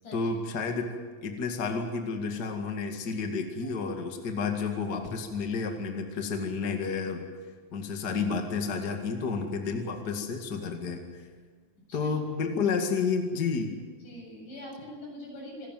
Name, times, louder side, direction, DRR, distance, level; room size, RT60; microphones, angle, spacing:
voice 1, 0.1-0.9 1.2-7.2 7.7-11.2 11.9-13.7, left 5 dB, 35° left, 4 dB, 2.3 m, -31 dB
voice 2, 14.0-15.7, left 1 dB, 80° left, -1 dB, 9.5 m, -43 dB
27.0 x 13.5 x 9.3 m, 1.5 s
omnidirectional pair, 3.5 m